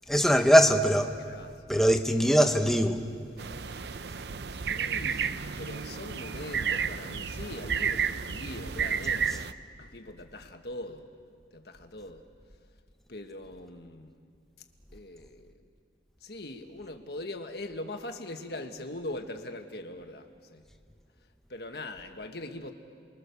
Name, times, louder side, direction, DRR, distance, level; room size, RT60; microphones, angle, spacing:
voice 1, 0.1-1.1 1.7-3.1, equal, ahead, 1.1 m, -21 dB
voice 2, 1.2-1.6 4.5-9.5 9.8-11.1 11.5-12.2 13.1-14.1 14.9-15.6 16.2-20.6 21.5-22.7, left 1 dB, 60° left, 1.6 m, -41 dB
sound 1, 3.4-9.5, right 6 dB, 70° right, 0.6 m, -32 dB
30.0 x 22.0 x 7.0 m
head